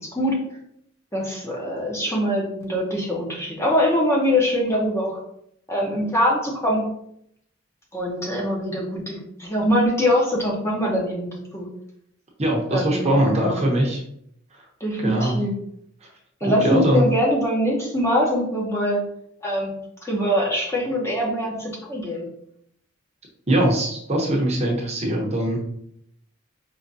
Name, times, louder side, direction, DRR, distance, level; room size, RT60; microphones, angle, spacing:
voice 1, 0.0-0.4 1.1-5.2 5.7-6.8 7.9-11.7 12.7-13.7 14.8-15.5 16.4-19.0 19.4-19.7 20.0-22.3, equal, 15° left, -3 dB, 0.8 m, -23 dB
voice 2, 12.4-14.0 15.0-15.4 16.4-17.0 23.5-25.6, right 1 dB, 30° right, -1 dB, 0.8 m, -21 dB
4.9 x 3.1 x 2.7 m, 0.72 s
head